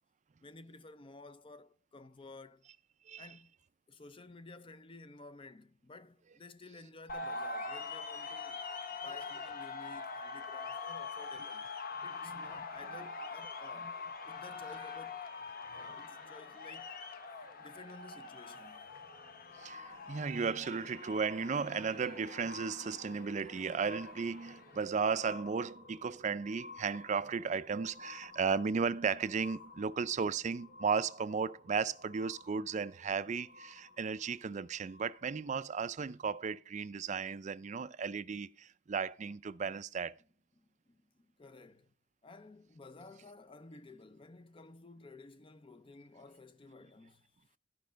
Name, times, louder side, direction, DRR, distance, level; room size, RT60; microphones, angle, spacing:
voice 1, 0.4-2.6 3.2-3.5 3.9-8.7 9.0-11.7 12.0-14.0 14.3-15.3 15.7-17.0 17.6-18.9 40.6-41.9 42.2-47.3, left 3 dB, 25° left, 0.5 m, -54 dB
sound 1, 7.1-24.9, left 4 dB, 50° left, 0.9 m, -44 dB
sound 2, 18.8-35.6 36.3-36.4, left 3 dB, 80° left, 5.8 m, -54 dB
voice 2, 19.6-40.2, right 5 dB, 40° right, 0.4 m, -35 dB
13.0 x 5.4 x 5.0 m
head